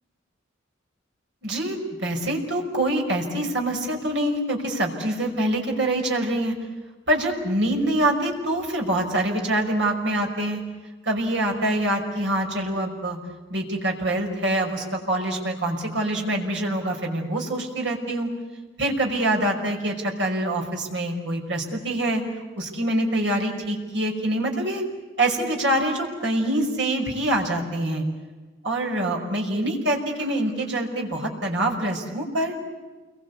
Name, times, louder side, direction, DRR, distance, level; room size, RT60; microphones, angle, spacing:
voice 1, 1.4-6.5 7.1-10.6 11.0-13.2 13.5-18.3 18.8-22.2 22.6-24.8 25.2-28.0 28.6-32.5, right 1 dB, 65° right, 1 dB, 5.7 m, -25 dB
29.0 x 23.0 x 8.4 m, 1.4 s
head